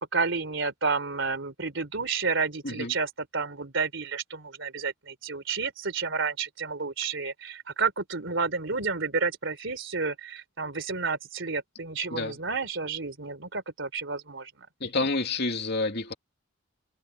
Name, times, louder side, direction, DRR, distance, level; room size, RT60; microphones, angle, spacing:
voice 1, 0.1-14.7, right 4 dB, 60° right, 3.6 m, -30 dB
voice 2, 14.8-16.1, left 3 dB, 50° left, 2.8 m, -29 dB
head